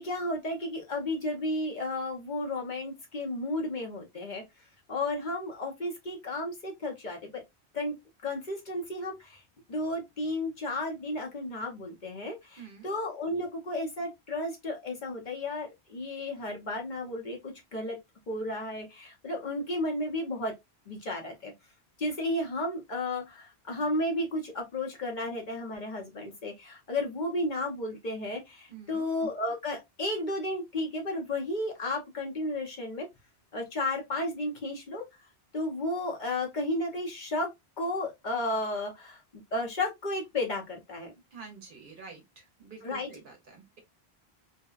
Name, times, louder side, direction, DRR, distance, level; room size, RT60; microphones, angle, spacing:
voice 1, 0.0-4.4 4.9-7.4 7.7-8.0 8.2-9.4 9.7-18.0 18.3-20.5 20.9-21.5 22.0-33.1 33.5-35.0 35.5-37.5 37.8-39.2 39.5-41.1 42.8-43.1, left 1 dB, 50° left, 0.8 m, -33 dB
voice 2, 12.6-12.9 28.7-29.1 41.3-43.8, right 5 dB, 55° right, 0.8 m, -48 dB
2.7 x 2.1 x 2.3 m
omnidirectional pair, 1.1 m